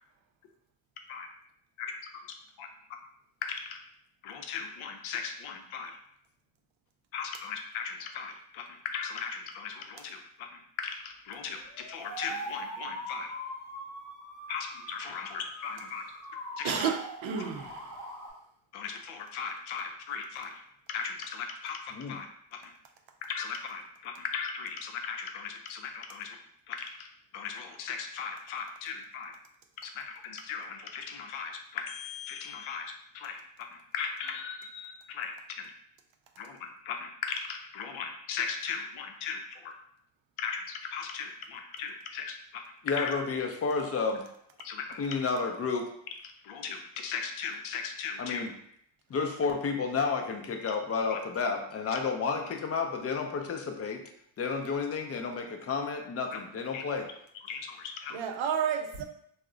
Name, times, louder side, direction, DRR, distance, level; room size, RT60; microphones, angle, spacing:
voice 1, 3.4-3.8 4.2-6.0 7.1-13.3 14.5-16.0 16.6-16.7 18.7-20.6 20.9-21.8 22.1-22.7 23.2-26.4 26.7-27.1 27.3-29.4 29.8-35.7 36.4-39.7 40.4-43.1 44.6-45.2 46.4-48.5 51.1-51.2 56.3-56.4 56.7-56.8 57.4-58.2, left 6 dB, 85° left, 5 dB, 0.6 m, -38 dB
sound 1, 11.4-18.3, equal, 5° left, 0.9 m, -42 dB
voice 2, 16.6-18.2 58.1-59.0, right 7 dB, 75° right, 4 dB, 0.6 m, -31 dB
voice 3, 42.8-44.2 45.0-45.9 48.2-48.5 49.1-54.0 54.4-57.1, left 4 dB, 35° left, 4 dB, 0.4 m, -31 dB
2.4 x 2.0 x 3.7 m, 0.70 s
cardioid pair, 90°, 47 cm